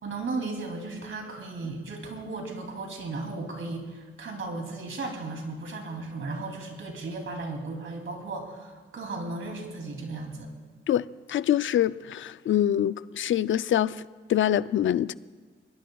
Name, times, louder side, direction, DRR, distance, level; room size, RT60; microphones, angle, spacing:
voice 1, 0.0-10.5, right 3 dB, 70° right, 2.9 m, -35 dB
voice 2, 10.9-14.0 14.3-15.1, left 11 dB, 65° left, 0.4 m, -25 dB
22.0 x 18.5 x 2.3 m
cardioid pair, 80°, 21 cm